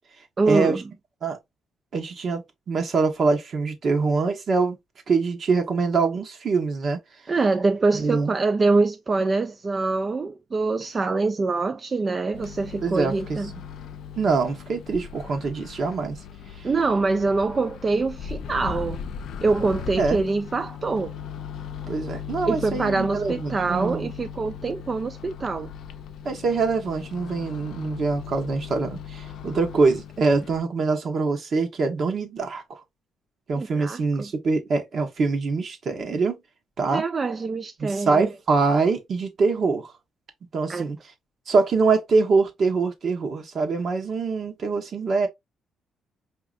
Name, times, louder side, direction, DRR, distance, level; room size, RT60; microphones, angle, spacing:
voice 1, 0.4-0.8 7.3-13.5 16.6-19.0 19.4-21.1 22.5-25.7 33.6-34.3 36.9-38.3 40.7-40.9, right 3 dB, 35° right, 0.3 m, -24 dB
voice 2, 1.9-4.8 5.1-7.0 7.9-8.3 12.8-13.4 14.2-16.2 16.6-16.7 20.0-20.2 21.9-24.1 26.2-32.8 33.5-36.4 36.8-37.0 37.8-39.9 40.5-41.0 41.5-45.3, right 4 dB, 55° right, 1.2 m, -24 dB
Microwave oven, 12.3-30.6, left 7 dB, 75° left, 0.5 m, -38 dB
4.9 x 2.9 x 2.4 m
cardioid pair, 90°, 0 cm